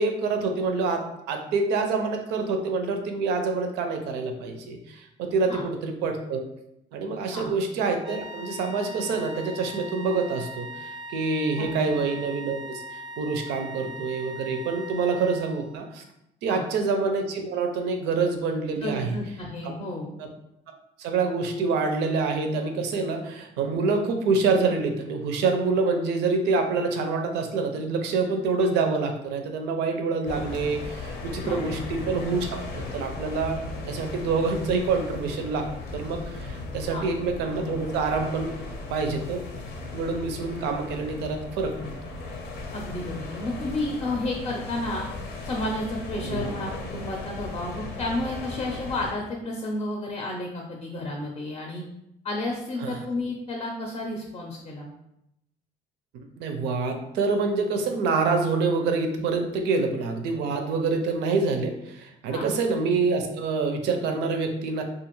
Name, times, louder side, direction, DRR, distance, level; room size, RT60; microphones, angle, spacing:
voice 1, 0.0-6.5 6.9-16.0 16.4-19.2 19.6-19.7 20.2-20.3 21.0-33.6 33.9-35.7 35.9-38.5 38.9-39.4 39.9-41.7 46.2-46.5 52.8-53.0 56.1-64.8, right 4 dB, 85° right, 4 dB, 0.5 m, -26 dB
sound 1, 8.0-15.9, equal, 30° right, 0.4 m, -40 dB
voice 2, 11.6-12.0 16.5-16.6 18.8-20.1 31.4-31.6 36.9-37.1 42.7-45.1 45.4-51.8 52.2-54.9 62.3-62.5, left 2 dB, 35° left, 0 dB, 0.5 m, -31 dB
sound 2, 30.3-49.1, left 3 dB, 75° left, 0.6 m, -37 dB
2.5 x 2.4 x 3.0 m, 0.82 s
cardioid pair, 110°, 17 cm